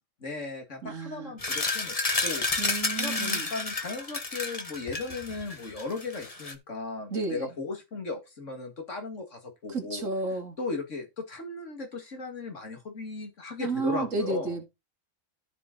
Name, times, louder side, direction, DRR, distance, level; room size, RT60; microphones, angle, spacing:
voice 1, 0.2-1.9 2.2-2.5 3.0-10.0 10.6-14.6, left 3 dB, 70° left, 2.4 m, -36 dB
voice 2, 0.8-1.3 2.6-3.5 7.1-7.5 9.7-10.6 13.6-14.6, right 3 dB, 80° right, 2.7 m, -32 dB
sound 1, 1.4-6.5, left 3 dB, 30° left, 1.4 m, -31 dB
13.5 x 5.1 x 4.0 m
omnidirectional pair, 1.3 m